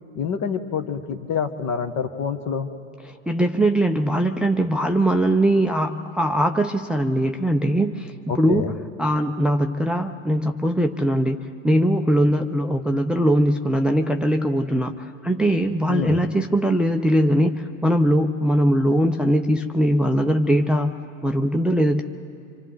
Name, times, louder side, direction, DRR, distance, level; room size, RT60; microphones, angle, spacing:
voice 1, 0.1-2.7 8.3-8.7 15.9-16.2, left 6 dB, 45° left, 8 dB, 1.4 m, -27 dB
voice 2, 3.1-8.6 9.0-22.0, right 1 dB, ahead, 5 dB, 0.6 m, -21 dB
26.5 x 25.5 x 3.9 m, 2.6 s
hypercardioid pair, 90°, 39 cm